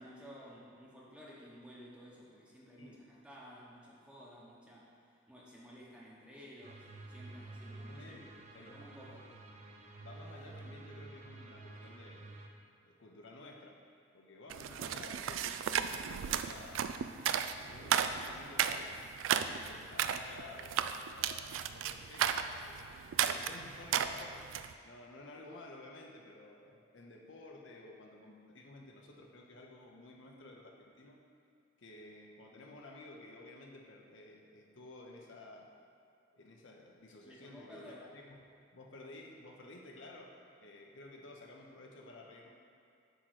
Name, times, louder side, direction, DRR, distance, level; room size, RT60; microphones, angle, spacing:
voice 1, 0.0-4.9 5.3-8.2 8.5-9.3 37.2-38.1, equal, 5° right, -5 dB, 0.9 m, -54 dB
sound 1, 6.6-12.5, right 2 dB, 35° right, 0.6 m, -50 dB
voice 2, 7.9-8.9 9.2-9.3 10.0-12.4 12.8-13.8 14.1-16.9 17.7-19.2 19.5-22.8 23.2-31.2 31.8-35.7 36.3-42.5, left 2 dB, 70° left, 0 dB, 0.7 m, -53 dB
sound 2, 14.5-24.7, right 8 dB, 90° right, 0.3 m, -34 dB
7.9 x 3.1 x 6.2 m, 2.6 s
head